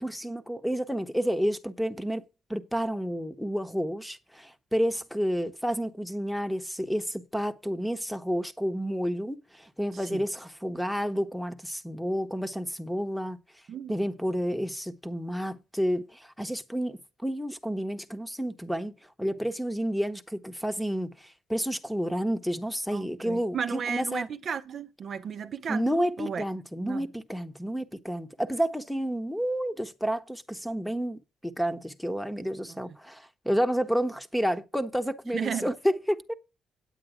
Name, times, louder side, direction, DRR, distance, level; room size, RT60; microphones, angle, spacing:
voice 1, 0.0-2.2 2.5-13.4 13.9-24.3 25.7-36.3, equal, 5° left, 1.0 m, -30 dB
voice 2, 9.9-10.2 13.7-14.0 22.9-25.9 26.2-26.4 26.8-27.1 32.7-33.0 35.3-35.7, right 7 dB, 55° right, 0.6 m, -34 dB
9.1 x 8.3 x 4.9 m
cardioid pair, 90°, 0 cm